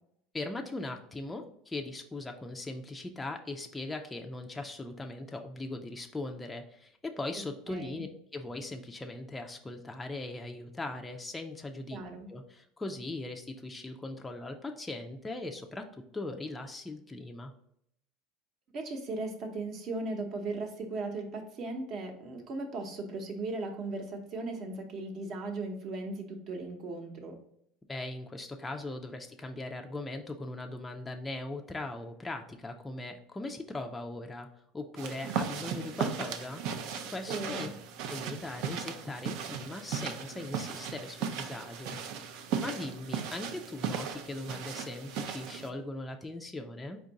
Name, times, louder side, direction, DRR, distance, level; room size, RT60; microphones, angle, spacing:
voice 1, 0.3-8.1 8.3-12.0 12.3-17.5 27.9-34.5 34.7-36.6 37.1-37.7 38.1-42.0 42.6-47.0, left 2 dB, 10° left, 3 dB, 0.4 m, -39 dB
voice 2, 7.7-8.0 11.9-12.3 18.7-27.3 37.3-37.7, right 2 dB, 45° right, 4 dB, 0.9 m, -37 dB
sound 1, 35.0-45.7, right 7 dB, 65° right, 0.5 m, -37 dB
4.5 x 2.5 x 4.0 m, 0.73 s
supercardioid pair, 125°, 0 cm